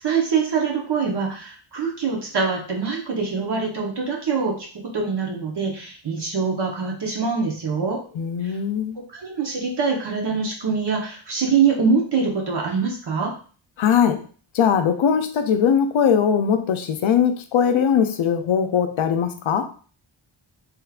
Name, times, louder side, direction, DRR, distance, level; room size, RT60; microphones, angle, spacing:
voice 1, 0.0-8.0 8.4-8.5 9.1-13.3, right 5 dB, 55° right, 0 dB, 1.0 m, -24 dB
voice 2, 8.2-9.0 13.8-14.2 14.5-19.7, left 7 dB, 70° left, 8 dB, 0.5 m, -20 dB
3.4 x 3.1 x 2.4 m, 0.41 s
wide cardioid pair, 155°, 50 cm